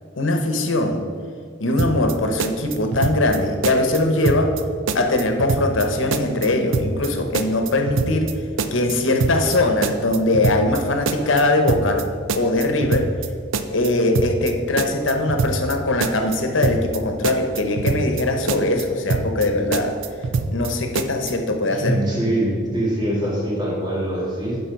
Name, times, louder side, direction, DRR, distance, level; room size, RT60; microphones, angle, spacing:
voice 1, 0.2-1.0 1.6-4.6 4.9-8.3 8.7-12.1 12.4-13.1 13.7-19.9 20.5-22.0, left 2 dB, 90° left, 5 dB, 0.9 m, -21 dB
sound 1, 1.8-2.1 2.4-3.4 3.6-4.0 4.3-4.6 4.9-5.9 6.1-6.5 6.7-7.1 7.3-8.3 8.6-8.9 9.2-9.6 9.8-10.8 11.1-11.4 11.7-12.0 12.3-13.3 13.5-13.9 14.2-14.5 14.8-15.7 16.0-16.4 16.6-17.0 17.2-18.2 18.5-18.8 19.1-19.5 19.7-20.7 21.0-21.3, right 4 dB, 90° right, 0.5 m, -24 dB
voice 2, 21.7-24.6, right 1 dB, 20° right, -5 dB, 2.4 m, -23 dB
11.0 x 4.1 x 5.3 m, 2.1 s
head